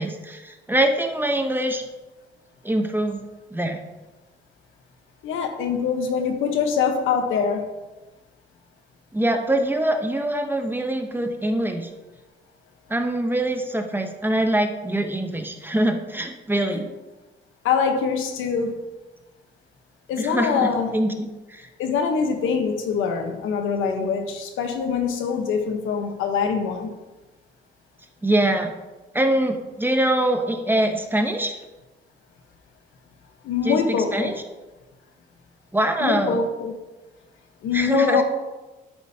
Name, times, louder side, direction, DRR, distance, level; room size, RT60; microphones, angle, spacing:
voice 1, 0.0-1.8 2.6-3.2 3.5-3.8 9.1-11.9 12.9-16.9 20.2-21.7 28.2-28.7 29.1-31.5 33.6-34.3 35.7-36.4 37.7-38.2, right 1 dB, 10° right, 5 dB, 0.8 m, -23 dB
voice 2, 5.2-7.7 16.7-16.8 17.6-18.8 20.1-20.9 21.8-26.9 33.4-34.4 36.0-36.7 37.6-38.2, left 6 dB, 85° left, 5 dB, 1.0 m, -24 dB
11.5 x 5.0 x 2.8 m, 1.1 s
cardioid pair, 90°, 20 cm